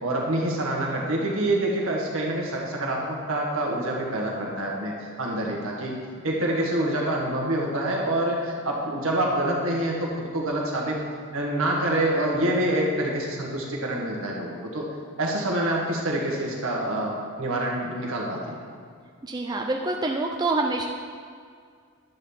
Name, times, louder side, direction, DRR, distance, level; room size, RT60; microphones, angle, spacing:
voice 1, 0.0-6.0 6.2-11.0 11.3-14.9 15.2-18.6, right 1 dB, 75° right, -2 dB, 1.6 m, -26 dB
voice 2, 19.2-20.9, right 2 dB, 20° right, 2 dB, 0.4 m, -26 dB
10.5 x 4.1 x 7.1 m, 2.1 s
head